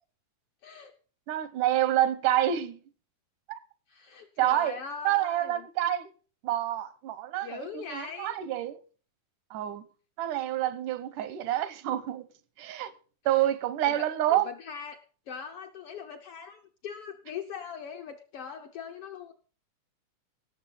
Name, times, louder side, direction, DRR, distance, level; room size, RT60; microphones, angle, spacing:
voice 1, 0.6-0.9 3.9-5.7 7.4-8.4 13.2-13.5 13.9-15.0 15.3-19.3, left 7 dB, 70° left, 1.4 m, -41 dB
voice 2, 1.3-2.8 3.5-3.6 4.4-4.8 5.0-6.1 6.4-8.8 9.5-9.8 10.2-12.3 12.6-12.9 13.3-14.5, right 12 dB, 85° right, 2.4 m, -28 dB
17.0 x 7.1 x 5.6 m
omnidirectional pair, 3.5 m